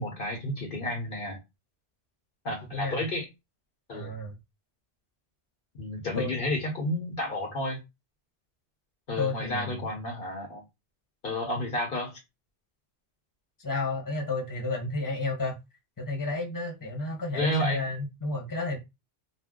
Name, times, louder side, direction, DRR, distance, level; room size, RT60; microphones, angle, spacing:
voice 1, 0.0-1.4 2.4-3.3 3.9-4.1 5.8-7.8 9.1-10.6 11.2-12.2 17.3-17.8, left 1 dB, 55° left, 0.9 m, -31 dB
voice 2, 2.7-3.0 3.9-4.3 6.1-6.5 9.2-9.8 13.6-15.6 16.0-18.8, left 2 dB, 20° left, 0.8 m, -31 dB
2.6 x 2.1 x 3.6 m
omnidirectional pair, 1.2 m